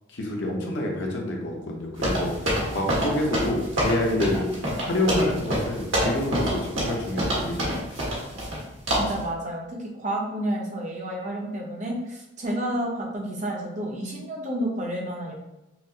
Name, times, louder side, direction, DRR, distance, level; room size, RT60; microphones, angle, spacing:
voice 1, 0.1-4.4 4.8-8.0, left 1 dB, 60° left, -1 dB, 0.8 m, -28 dB
sound 1, 2.0-8.6 8.9-9.2, equal, 70° right, 1.3 m, -27 dB
voice 2, 8.9-15.3, right 1 dB, 35° right, -1 dB, 0.7 m, -30 dB
5.7 x 2.0 x 2.8 m, 0.95 s
head